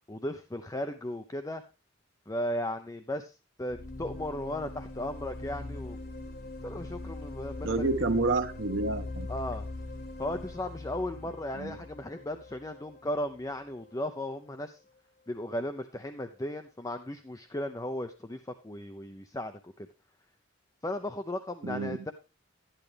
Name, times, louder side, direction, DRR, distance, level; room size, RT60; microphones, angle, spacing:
voice 1, 0.0-1.6 2.3-6.0 6.6-7.9 9.3-9.7 10.2-14.8 15.3-19.7 20.8-22.1, left 1 dB, 15° left, 0.6 m, -36 dB
sound 1, 3.7-13.5, left 2 dB, 55° left, 1.9 m, -41 dB
voice 2, 7.6-9.3 11.5-11.8 21.6-22.0, right 3 dB, 75° right, 1.1 m, -29 dB
12.0 x 10.0 x 3.4 m
head